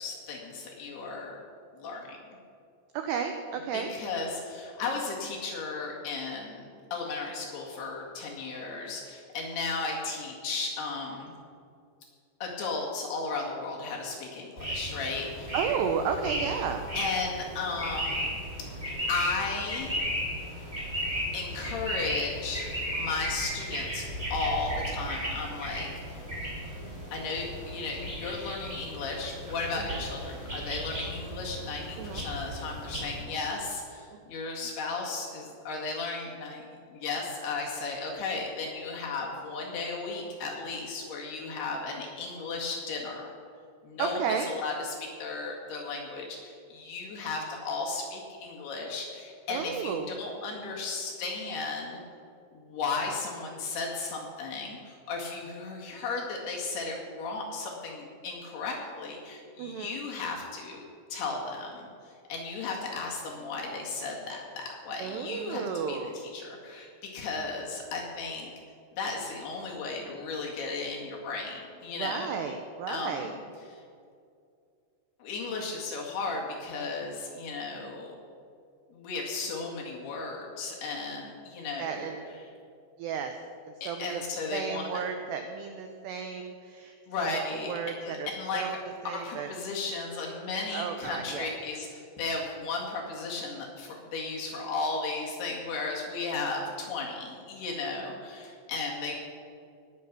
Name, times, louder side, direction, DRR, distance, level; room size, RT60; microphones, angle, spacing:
voice 1, 0.0-1.4 1.7-2.2 3.7-11.3 12.4-15.6 17.0-18.3 19.1-20.0 21.3-22.7 22.9-26.2 27.1-43.3 43.8-52.0 52.5-65.6 65.9-68.5 69.0-72.5 72.9-73.3 73.7-73.8 75.2-78.2 78.9-82.1 83.8-84.8 87.1-87.7 88.0-88.6 89.2-99.1, left 4 dB, 60° left, -2 dB, 3.6 m, -35 dB
voice 2, 2.9-3.9 15.5-16.9 29.7-30.0 32.0-32.3 34.1-34.2 44.0-44.5 49.5-50.1 59.6-60.0 65.0-66.2 72.0-73.3 81.8-82.3 83.0-83.4 83.7-84.2 84.5-88.8 89.0-89.5 90.7-91.5, right 7 dB, 90° right, 6 dB, 2.3 m, -33 dB
sound 1, 14.6-33.2, equal, 10° right, 2.1 m, -35 dB
19.0 x 7.7 x 5.9 m, 2.3 s
omnidirectional pair, 5.7 m